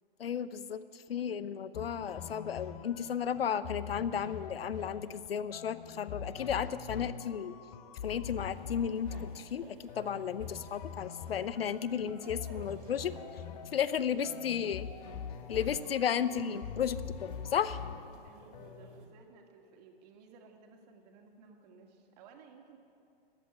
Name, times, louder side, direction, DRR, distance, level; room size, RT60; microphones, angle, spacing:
voice 1, 0.2-7.6 8.0-13.1 13.7-14.9 15.5-17.8, left 8 dB, 75° left, 15 dB, 0.7 m, -34 dB
sound 1, 1.7-19.0, left 7 dB, 35° left, 0.8 m, -44 dB
sound 2, 8.3-19.1, right 2 dB, 60° right, 2.3 m, -58 dB
voice 2, 14.1-14.5 14.8-15.2 15.6-16.6 18.2-22.8, right 5 dB, 40° right, 3 dB, 1.8 m, -57 dB
13.5 x 8.1 x 9.8 m, 2.5 s
hypercardioid pair, 125°, 30 cm